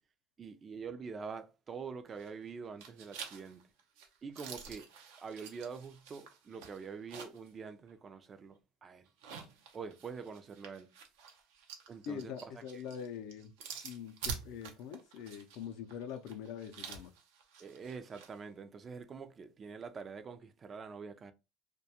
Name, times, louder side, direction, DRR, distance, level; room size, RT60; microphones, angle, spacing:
voice 1, 0.4-3.7 4.2-4.9 5.2-9.1 9.7-10.9 11.9-12.5 17.6-21.3, right 5 dB, 30° right, 0.4 m, -45 dB
sound 1, 2.1-2.5 2.8-7.5 7.9-8.0 9.0-18.3, right 6 dB, 85° right, 0.6 m, -48 dB
voice 2, 12.1-13.5 13.8-17.1, left 8 dB, 65° left, 0.4 m, -43 dB
2.2 x 2.2 x 2.8 m
supercardioid pair, 110°, 0 cm